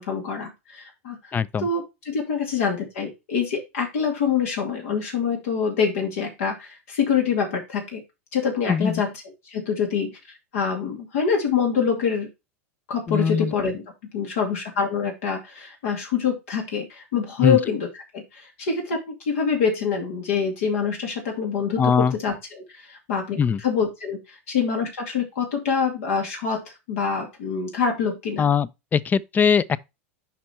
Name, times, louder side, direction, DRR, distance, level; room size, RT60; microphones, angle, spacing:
voice 1, 0.0-1.2 1.6-8.0 8.3-10.1 10.5-12.3 12.9-13.8 14.1-17.9 18.1-26.6 26.9-28.5, left 6 dB, 75° left, 2.4 m, -25 dB
voice 2, 1.3-1.7 8.7-9.0 13.1-13.5 17.4-17.6 21.8-22.1 23.4-23.6 28.4-29.8, left 6 dB, 25° left, 0.5 m, -21 dB
5.8 x 5.4 x 4.3 m
hypercardioid pair, 95°, 7 cm